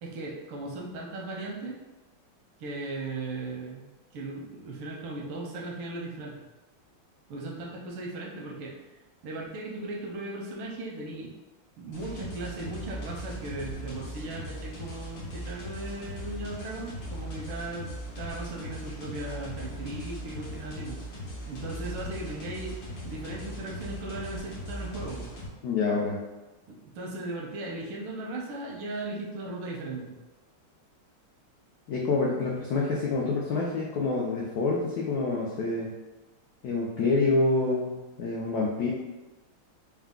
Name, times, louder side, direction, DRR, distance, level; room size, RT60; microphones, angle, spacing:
voice 1, 0.0-1.8 2.6-6.3 7.3-8.7 9.2-11.3 11.8-21.0 21.5-22.7 23.0-25.3 26.7-30.2, right 2 dB, 85° right, -2 dB, 1.7 m, -37 dB
sound 1, 11.9-25.5, equal, 65° left, 1.8 m, -39 dB
voice 2, 25.6-26.2 31.9-35.9 36.6-38.9, left 3 dB, 85° left, -3 dB, 0.8 m, -27 dB
4.6 x 2.2 x 3.6 m, 1.1 s
omnidirectional pair, 2.3 m